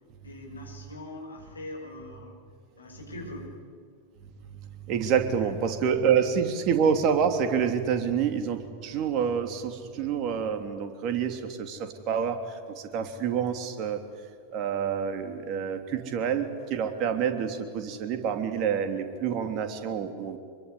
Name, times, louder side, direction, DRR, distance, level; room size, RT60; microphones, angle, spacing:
voice 1, 0.2-2.4 2.8-3.5 5.4-5.5, left 2 dB, 75° left, 2 dB, 6.6 m, -42 dB
voice 2, 4.9-11.8 12.1-12.4 12.9-14.0 14.5-20.4, right 7 dB, 40° right, 7 dB, 3.1 m, -27 dB
25.5 x 23.0 x 9.8 m, 2.2 s
figure-of-eight pair, 90°, 0 cm